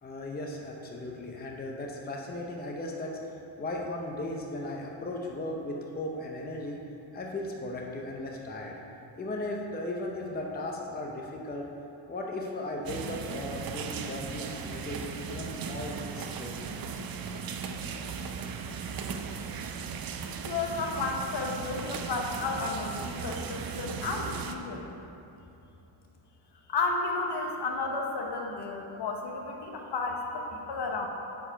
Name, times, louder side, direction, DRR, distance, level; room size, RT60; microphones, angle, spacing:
voice 1, 0.0-3.2 3.6-6.8 7.1-8.8 9.2-11.7 12.1-16.7, left 1 dB, 20° left, 0 dB, 0.6 m, -36 dB
sound 1, 12.8-24.5, right 6 dB, 50° right, 0.5 m, -37 dB
voice 2, 20.4-24.9 26.7-31.1, left 3 dB, 60° left, 2 dB, 1.0 m, -32 dB
8.9 x 4.7 x 5.6 m, 2.8 s
wide cardioid pair, 160°, 46 cm